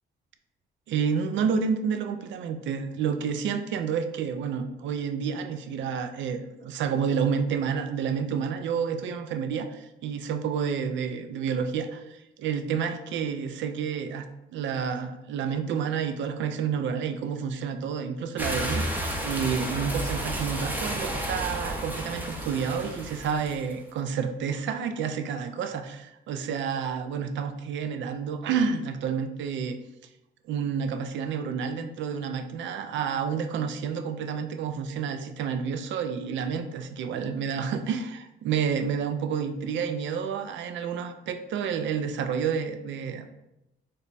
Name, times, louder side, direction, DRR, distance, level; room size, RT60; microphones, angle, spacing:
voice 1, 0.9-14.3 14.5-29.8 30.4-43.3, right 6 dB, 70° right, 8 dB, 0.4 m, -29 dB
sound 1, 18.4-23.7, right 1 dB, 10° right, 0.6 m, -32 dB
3.2 x 2.1 x 3.9 m, 0.91 s
cardioid pair, 90°, 20 cm